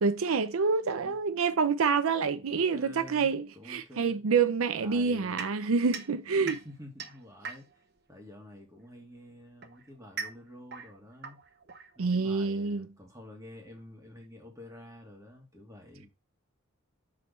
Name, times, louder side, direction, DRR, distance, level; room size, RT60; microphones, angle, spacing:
voice 1, 0.0-6.5 12.0-12.9, right 5 dB, 80° right, 0.5 m, -27 dB
voice 2, 2.3-4.2 4.8-5.8 6.4-7.8 8.1-11.4 12.0-16.1, equal, 15° right, 2.5 m, -49 dB
sound 1, 5.4-8.0 9.0-12.4, right 5 dB, 50° right, 1.0 m, -42 dB
6.4 x 4.2 x 5.4 m
head